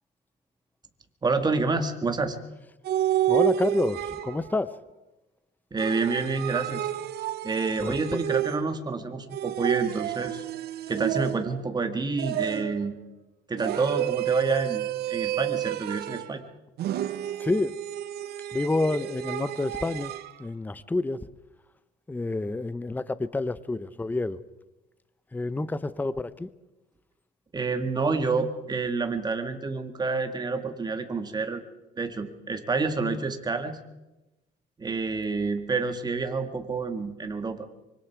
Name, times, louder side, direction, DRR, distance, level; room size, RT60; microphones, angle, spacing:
voice 1, 1.2-2.4 5.7-6.9 7.4-10.4 10.9-13.0 13.5-16.4 27.5-31.6 32.0-33.8 34.8-37.7, right 4 dB, 25° right, 6 dB, 2.0 m, -28 dB
sound 1, 2.9-4.6 5.8-8.9 9.3-11.7 12.2-12.9 13.6-16.4 16.8-20.3, right 12 dB, 70° right, 1.0 m, -30 dB
voice 2, 3.3-4.7 7.8-8.2 17.4-17.7 18.5-20.1 20.4-21.3 22.1-24.4 25.3-26.5, left 2 dB, 10° left, 15 dB, 0.7 m, -28 dB
25.0 x 24.0 x 4.6 m, 1.0 s
cardioid pair, 110°, 17 cm